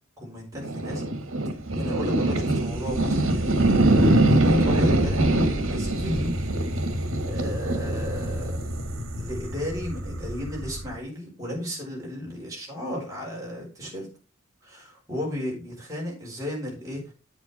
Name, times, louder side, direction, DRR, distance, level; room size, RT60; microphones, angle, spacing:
voice 1, 0.2-1.0 1.7-3.5 4.2-6.4 7.2-8.6 9.1-14.1 14.6-17.1, equal, 15° right, -3 dB, 4.8 m, -34 dB
sound 1, 0.6-11.0, right 1 dB, 70° right, 1.8 m, -24 dB
8.3 x 8.2 x 4.2 m, 0.34 s
head